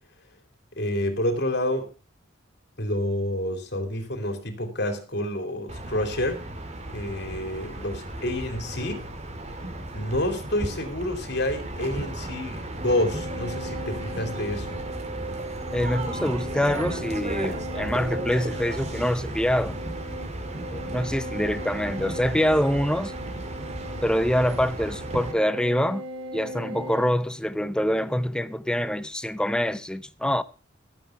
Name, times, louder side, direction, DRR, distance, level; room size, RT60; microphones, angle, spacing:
voice 1, 0.7-1.9 2.8-6.5 6.9-9.1 9.9-14.8, left 1 dB, 60° left, 2.9 m, -28 dB
sound 1, 5.7-25.3, right 1 dB, 35° right, 2.2 m, -35 dB
sound 2, 12.8-27.1, right 1 dB, 60° right, 6.6 m, -38 dB
voice 2, 15.7-19.8 20.7-23.1 24.0-26.0 26.3-30.4, equal, 5° left, 0.6 m, -25 dB
12.5 x 9.2 x 5.6 m
head